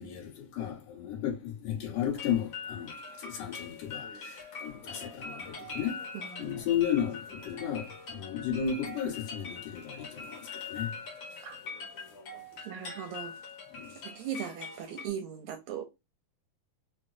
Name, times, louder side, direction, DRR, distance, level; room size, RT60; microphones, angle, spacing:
voice 1, 0.0-2.9 3.2-6.0 6.4-10.9 13.7-13.9, left 9 dB, 80° left, 2.9 m, -34 dB
sound 1, 2.1-15.1, left 4 dB, 60° left, 1.2 m, -43 dB
voice 2, 6.1-6.7 11.4-11.6 12.6-13.4 14.0-15.8, right 8 dB, 80° right, 1.6 m, -39 dB
5.8 x 2.0 x 2.5 m
omnidirectional pair, 3.6 m